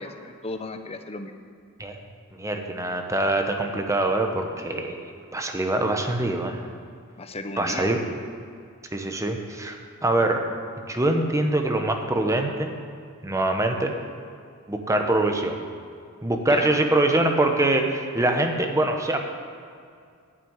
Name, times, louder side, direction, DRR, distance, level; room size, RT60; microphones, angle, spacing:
voice 1, 0.0-1.3 7.2-8.1 16.5-16.8, left 2 dB, 25° left, 7 dB, 0.7 m, -35 dB
voice 2, 2.4-4.9 5.3-6.6 7.6-8.0 8.9-9.8 10.0-10.5 10.9-12.7 13.2-13.9 14.7-15.6 16.2-19.2, right 2 dB, 15° right, 4 dB, 0.9 m, -24 dB
11.0 x 5.9 x 8.8 m, 2.3 s
head